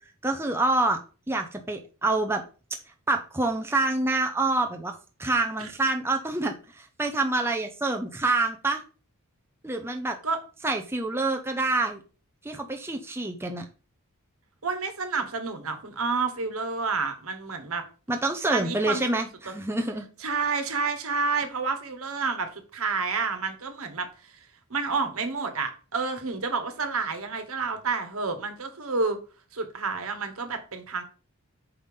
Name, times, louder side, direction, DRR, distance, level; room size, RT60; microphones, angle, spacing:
voice 1, 0.2-1.0 1.3-2.4 3.1-8.8 9.6-10.2 10.6-12.0 12.4-13.6 18.1-20.1, right 2 dB, 10° right, 3 dB, 0.6 m, -27 dB
voice 2, 14.6-17.8 18.5-19.5 20.2-24.1 24.7-29.2 29.5-31.0, right 4 dB, 70° right, 8 dB, 1.3 m, -29 dB
5.7 x 5.0 x 5.3 m, 0.35 s
head